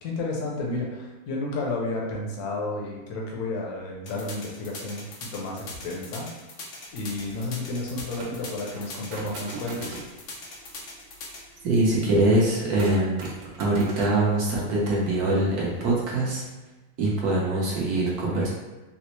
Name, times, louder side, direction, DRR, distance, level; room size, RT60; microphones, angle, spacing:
voice 1, 0.0-6.3 6.9-10.0, left 2 dB, 65° left, -2 dB, 1.0 m, -32 dB
sound 1, 4.1-11.4, left 3 dB, 85° left, 0.6 m, -40 dB
sound 2, 7.1-15.9, right 3 dB, 85° right, 1.5 m, -42 dB
voice 2, 11.6-13.1 13.6-16.4 17.0-18.5, right 2 dB, 60° right, -5 dB, 1.1 m, -23 dB
4.1 x 2.0 x 2.9 m, 1.2 s
omnidirectional pair, 2.1 m